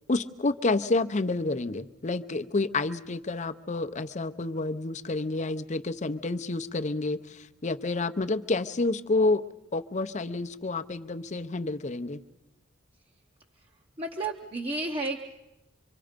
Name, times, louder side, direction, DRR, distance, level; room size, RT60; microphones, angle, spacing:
voice 1, 0.1-9.4 9.7-12.2, left 3 dB, 40° left, 10 dB, 0.7 m, -29 dB
voice 2, 14.0-15.2, right 2 dB, 30° right, 2 dB, 0.9 m, -32 dB
25.5 x 24.5 x 5.1 m, 1.0 s
head